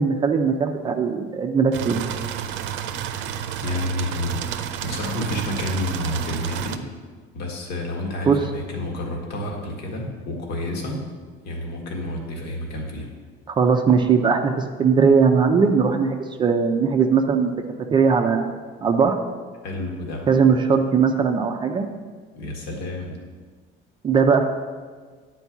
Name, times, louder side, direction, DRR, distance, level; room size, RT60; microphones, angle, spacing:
voice 1, 0.0-2.0 8.3-8.4 13.5-17.5 17.9-18.5 18.8-19.2 20.3-21.9 24.0-24.5, right 5 dB, 25° right, 4 dB, 0.5 m, -19 dB
sound 1, 1.7-6.8, right 9 dB, 80° right, 0.6 m, -30 dB
voice 2, 3.6-4.5 4.8-6.8 7.3-11.0 11.4-13.1 19.6-20.3 22.4-23.2, left 1 dB, 60° left, 0 dB, 1.7 m, -29 dB
9.5 x 4.6 x 7.1 m, 1.5 s
cardioid pair, 170°, 19 cm